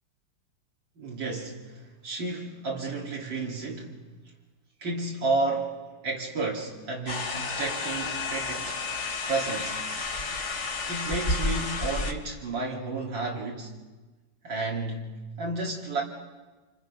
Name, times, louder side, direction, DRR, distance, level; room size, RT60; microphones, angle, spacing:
voice 1, 1.0-4.0 4.8-5.8 6.0-8.8 9.3-9.8 10.9-13.7 14.4-16.0, right 3 dB, 70° right, 3.2 m, -32 dB
sound 1, 7.1-12.1, left 3 dB, 40° left, 1.7 m, -31 dB
30.0 x 27.0 x 5.5 m
omnidirectional pair, 2.1 m